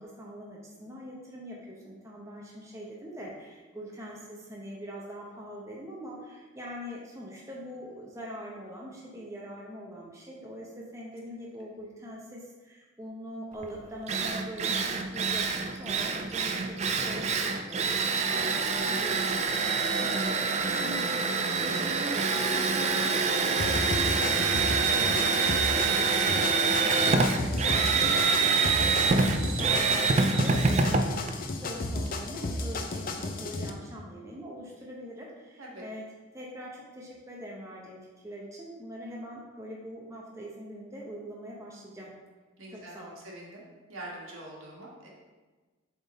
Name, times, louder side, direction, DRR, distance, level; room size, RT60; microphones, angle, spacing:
voice 1, 0.0-19.7 19.9-24.7 24.9-31.2 31.6-36.1 36.3-38.0 38.2-42.1 42.7-43.1, equal, 15° right, -4 dB, 0.7 m, -42 dB
Drill, 13.6-13.7 14.1-32.2, right 4 dB, 30° right, 0.3 m, -26 dB
sound 1, 23.6-33.7, left 2 dB, 40° left, 0.5 m, -33 dB
voice 2, 42.6-43.6 43.9-45.1, right 1 dB, 75° right, -3 dB, 1.5 m, -44 dB
7.3 x 3.6 x 4.1 m, 1.3 s
head